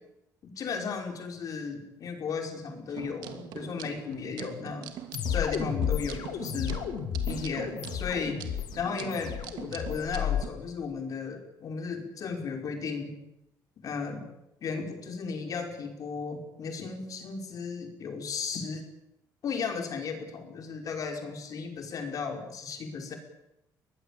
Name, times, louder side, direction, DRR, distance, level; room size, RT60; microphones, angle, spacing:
voice 1, 0.4-4.9 5.3-6.8 7.2-13.1 13.8-14.3 14.6-18.8 19.4-23.2, left 5 dB, 50° left, 3 dB, 5.3 m, -35 dB
sound 1, 2.9-10.5, right 10 dB, 80° right, 2.7 m, -43 dB
sound 2, 5.1-10.4, left 9 dB, 65° left, 3.5 m, -32 dB
23.5 x 19.5 x 8.7 m, 0.89 s
cardioid pair, 120°, 7 cm